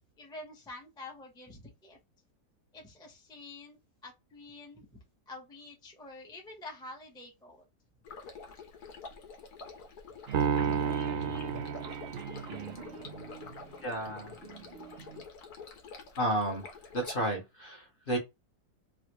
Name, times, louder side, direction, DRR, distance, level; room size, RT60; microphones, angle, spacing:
voice 1, 0.2-2.0 2.7-3.8 4.0-4.9 5.3-7.6, left 2 dB, 5° left, 0.5 m, -47 dB
Stream, 8.0-17.1, left 4 dB, 70° left, 1.3 m, -47 dB
sound 1, 10.3-15.2, right 7 dB, 65° right, 0.6 m, -44 dB
Piano, 10.3-12.8, right 6 dB, 90° right, 1.3 m, -31 dB
voice 2, 13.8-14.4 16.2-16.6 16.9-18.2, right 1 dB, 40° left, 1.0 m, -32 dB
3.3 x 2.4 x 2.9 m
omnidirectional pair, 1.8 m